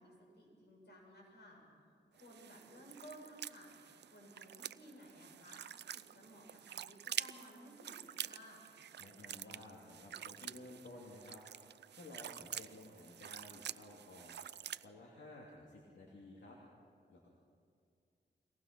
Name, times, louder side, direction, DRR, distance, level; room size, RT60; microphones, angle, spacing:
voice 1, 0.0-1.6 2.1-5.6 5.9-8.6, equal, 70° left, -2 dB, 7.5 m, -57 dB
sound 1, 2.2-14.9, right 10 dB, 70° right, 0.4 m, -47 dB
voice 2, 9.0-11.4 11.7-16.6 17.1-17.3, left 2 dB, 90° left, -3 dB, 2.7 m, -54 dB
23.0 x 18.5 x 6.0 m, 2.3 s
wide cardioid pair, 80°, 18 cm